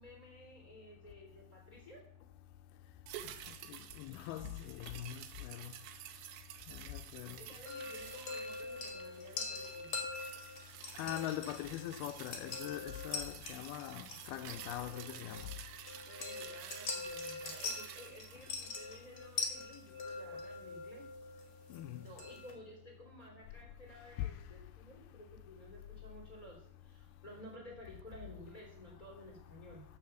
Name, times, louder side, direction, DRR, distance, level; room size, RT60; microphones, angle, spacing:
voice 1, 0.0-2.0 7.4-9.9 16.0-21.1 21.9-29.8, equal, 15° left, 2.7 m, -54 dB
sound 1, 3.1-19.6 19.9-20.0, right 11 dB, 80° right, 2.8 m, -51 dB
voice 2, 3.7-5.7 6.7-7.4 11.0-15.4 21.7-22.1, left 13 dB, 85° left, 2.3 m, -42 dB
sound 2, 7.7-22.5, left 4 dB, 50° left, 1.6 m, -44 dB
7.8 x 7.0 x 6.8 m
omnidirectional pair, 4.7 m